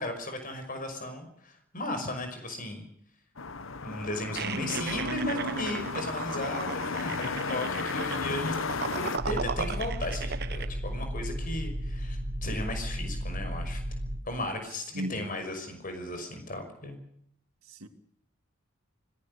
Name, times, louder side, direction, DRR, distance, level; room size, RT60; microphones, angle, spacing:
voice 1, 0.0-2.8 3.8-13.8 14.2-17.0, left 1 dB, 40° left, 5.7 m, -36 dB
sound 1, 3.4-9.2, left 4 dB, 65° left, 1.1 m, -34 dB
sound 2, 4.4-10.7, right 6 dB, 50° right, 0.9 m, -37 dB
voice 2, 4.4-6.9 14.9-15.3 17.6-17.9, right 1 dB, 90° right, 2.7 m, -37 dB
sound 3, 9.2-14.2, equal, 25° right, 4.5 m, -34 dB
26.0 x 18.5 x 6.7 m
head